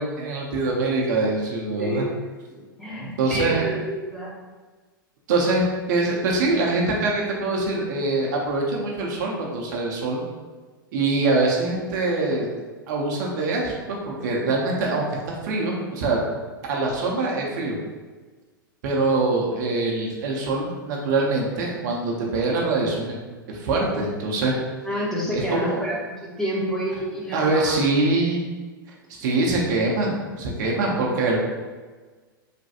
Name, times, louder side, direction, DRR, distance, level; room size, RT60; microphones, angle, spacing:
voice 1, 0.0-2.1 2.9-3.7 5.3-10.2 10.9-12.5 12.9-16.2 16.7-17.8 18.8-23.2 23.5-24.6 25.3-25.8 27.3-28.4 29.1-31.4, right 3 dB, 55° right, -2 dB, 0.6 m, -24 dB
voice 2, 1.8-4.3 24.8-27.8, equal, 5° left, -5 dB, 0.7 m, -29 dB
3.2 x 2.2 x 2.7 m, 1.4 s
figure-of-eight pair, 100°, 12 cm